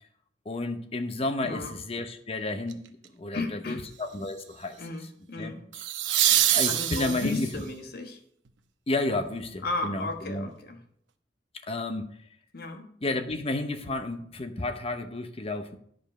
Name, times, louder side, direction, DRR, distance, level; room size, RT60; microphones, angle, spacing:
voice 1, 0.5-2.8 3.1-4.8 5.4-5.5 6.5-7.5 8.9-10.5 11.7-12.1 13.0-15.8, left 2 dB, 35° left, 8 dB, 0.8 m, -31 dB
voice 2, 1.4-1.7 3.3-3.9 4.8-5.7 6.7-8.2 9.6-10.8 12.5-12.9, left 3 dB, 55° left, 5 dB, 1.2 m, -34 dB
sound 1, 2.7-3.0 5.7-7.6 10.5-10.6, right 12 dB, 85° right, 0.7 m, -25 dB
11.0 x 5.2 x 5.3 m, 0.67 s
head